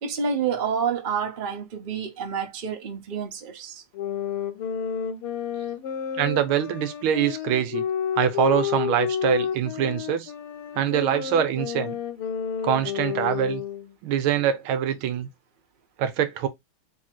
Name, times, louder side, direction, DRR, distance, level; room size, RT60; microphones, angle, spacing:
voice 1, 0.0-3.8, right 6 dB, 50° right, 0.5 m, -28 dB
sound 1, 3.9-13.9, left 8 dB, 85° left, 1.6 m, -30 dB
voice 2, 6.2-7.8 8.1-10.3 10.7-12.0 12.6-13.6 14.0-15.3 16.0-16.5, right 9 dB, 75° right, 1.5 m, -24 dB
4.0 x 2.7 x 4.4 m
omnidirectional pair, 2.4 m